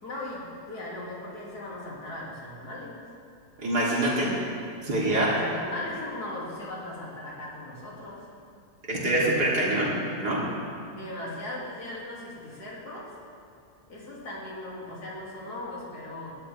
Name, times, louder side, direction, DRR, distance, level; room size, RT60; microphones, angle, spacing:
voice 1, 0.0-3.0 5.0-8.3 10.9-13.1 13.9-16.4, left 1 dB, 70° left, -5 dB, 3.4 m, -38 dB
voice 2, 3.6-4.3 4.8-5.3 8.9-9.9 10.2-10.4, right 1 dB, 75° right, -6 dB, 3.8 m, -25 dB
20.0 x 12.5 x 3.5 m, 2.6 s
omnidirectional pair, 1.7 m